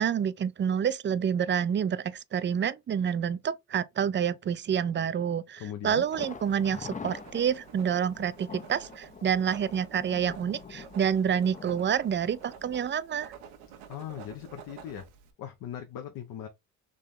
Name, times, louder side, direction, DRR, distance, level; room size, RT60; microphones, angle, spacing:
voice 1, 0.0-13.3, right 8 dB, 30° right, 0.4 m, -28 dB
voice 2, 5.6-6.0 13.9-15.0 15.4-16.5, left 10 dB, 70° left, 0.9 m, -39 dB
Writing, 5.9-15.3, right 8 dB, 90° right, 1.0 m, -50 dB
Thunder, 6.1-13.9 14.2-14.3 14.7-14.8, left 5 dB, 20° left, 0.6 m, -46 dB
3.8 x 3.2 x 3.6 m
supercardioid pair, 80°, 36 cm